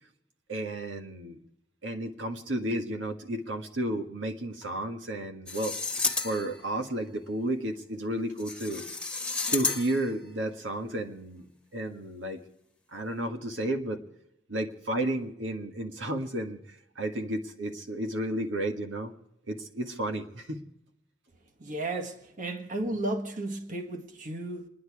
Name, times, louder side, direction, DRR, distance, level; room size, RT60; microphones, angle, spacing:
voice 1, 0.5-1.4 1.8-5.7 6.2-8.9 9.5-12.4 12.9-14.0 14.5-19.1 19.5-20.6, right 1 dB, 90° right, 1.7 m, -32 dB
sound 1, 5.5-6.7 8.4-10.1, left 4 dB, 5° left, 1.4 m, -32 dB
voice 2, 21.6-24.7, right 2 dB, 45° right, 1.6 m, -34 dB
28.5 x 10.5 x 4.8 m
head